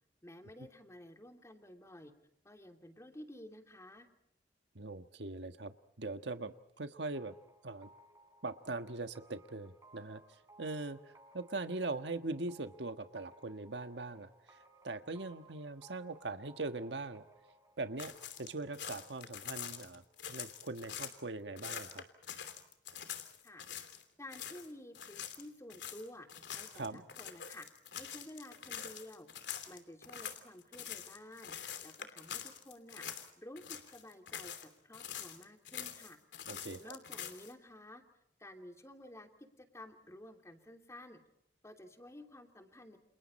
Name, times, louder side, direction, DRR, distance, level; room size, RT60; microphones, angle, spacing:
voice 1, 0.2-2.1 2.4-4.1 23.4-23.6 24.2-27.7 28.0-29.3 29.7-31.5 31.8-33.0 33.4-36.2 36.8-38.0 38.4-41.2 41.6-43.0, left 1 dB, 15° left, 5 dB, 2.9 m, -52 dB
voice 2, 4.7-7.3 7.6-7.9 8.4-17.2 17.8-22.0 26.7-27.0 36.5-36.9, right 3 dB, 80° right, 9 dB, 1.5 m, -41 dB
sound 1, 7.1-20.7, right 1 dB, 20° right, 4.7 m, -63 dB
sound 2, 18.0-21.2 21.6-24.0 24.3-24.7 24.9-33.3 33.6-34.7 34.9-37.5, left 9 dB, 85° left, 2.9 m, -45 dB
30.0 x 28.5 x 4.3 m, 0.78 s
head